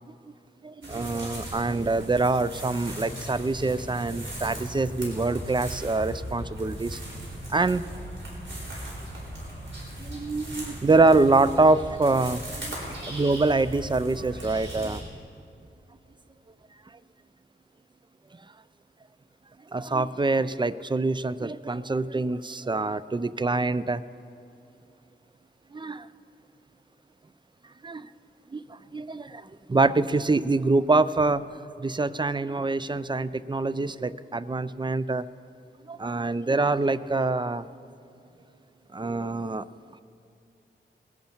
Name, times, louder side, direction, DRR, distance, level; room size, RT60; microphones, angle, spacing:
voice 1, 0.6-7.0 7.5-7.8 10.0-15.0 19.7-24.0 25.7-26.1 27.8-28.1 28.5-29.4 29.7-31.5 31.8-35.2 35.9-37.6 38.9-39.6, right 3 dB, 25° right, 15 dB, 0.4 m, -25 dB
sound 1, 0.8-15.0, right 1 dB, 85° right, 4.3 m, -38 dB
20.0 x 11.0 x 4.5 m, 2.7 s
wide cardioid pair, 75°, 19 cm